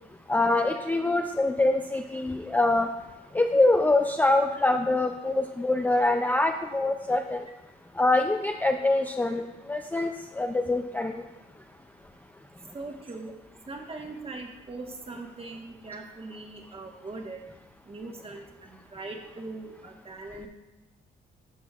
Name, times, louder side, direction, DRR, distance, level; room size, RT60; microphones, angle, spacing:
voice 1, 0.3-2.9 3.3-7.5 8.0-11.2, left 2 dB, 10° left, 4 dB, 0.4 m, -24 dB
voice 2, 12.7-13.3 13.7-17.4 17.9-20.5, right 3 dB, 30° right, 2 dB, 1.3 m, -40 dB
11.5 x 6.2 x 2.4 m, 1.1 s
cardioid pair, 90°, 20 cm